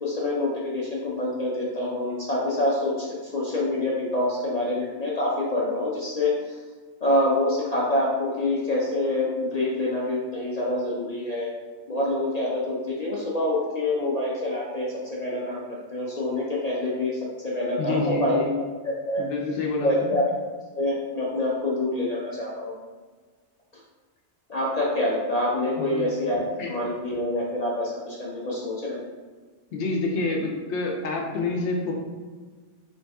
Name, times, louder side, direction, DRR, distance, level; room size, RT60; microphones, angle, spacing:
voice 1, 0.0-3.1 3.3-6.6 7.0-11.5 11.9-15.6 15.9-18.4 18.8-19.2 19.8-20.3 20.7-22.7 24.5-29.0, left 1 dB, 55° left, -5 dB, 0.5 m, -26 dB
voice 2, 17.8-18.5 19.2-20.1 25.8-26.1 26.6-26.7 29.7-31.9, left 3 dB, 75° left, 0 dB, 0.9 m, -28 dB
3.1 x 2.7 x 3.3 m, 1.4 s
omnidirectional pair, 1.2 m